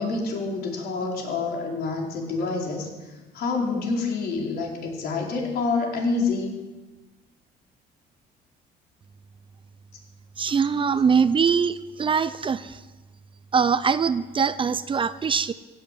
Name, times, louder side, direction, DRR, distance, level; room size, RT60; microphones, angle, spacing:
voice 1, 0.0-6.6, left 4 dB, 70° left, -1 dB, 4.5 m, -27 dB
voice 2, 10.4-12.8 13.5-15.5, right 6 dB, 30° right, 14 dB, 0.6 m, -22 dB
16.5 x 8.6 x 8.5 m, 1.2 s
cardioid pair, 110°, 17 cm